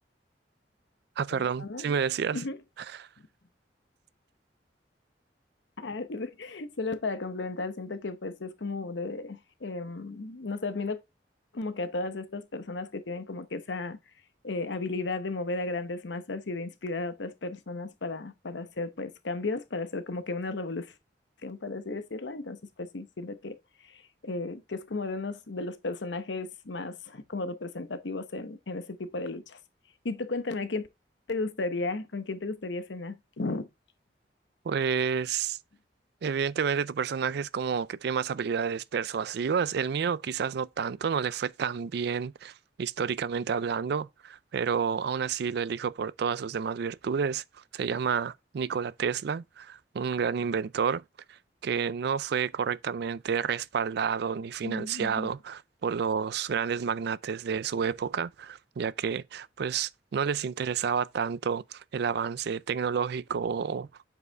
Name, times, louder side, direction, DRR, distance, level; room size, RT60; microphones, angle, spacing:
voice 1, 1.2-2.4 2.9-3.1 34.7-35.6 36.2-47.4 47.7-51.0 51.6-64.1, right 6 dB, 65° right, 0.4 m, -30 dB
voice 2, 5.8-11.0 11.5-14.0 14.4-20.9 21.4-23.6 23.9-29.6 30.0-30.9 31.3-33.7 54.6-55.3, left 3 dB, 85° left, 0.9 m, -34 dB
8.0 x 4.8 x 3.4 m
head